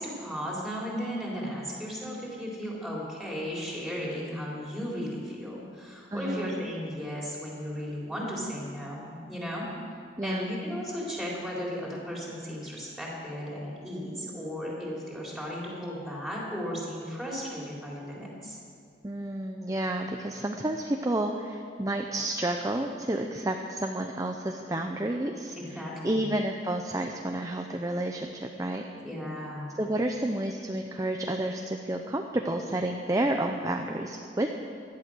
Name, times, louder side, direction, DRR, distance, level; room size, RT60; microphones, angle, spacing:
voice 1, 0.0-9.7 10.2-18.6 25.6-26.3 29.0-29.8, equal, ahead, -5 dB, 3.9 m, -35 dB
voice 2, 6.1-6.5 10.2-10.5 19.0-28.8 29.8-34.5, right 1 dB, 20° right, 3 dB, 0.6 m, -30 dB
16.5 x 12.0 x 6.3 m, 2.3 s
head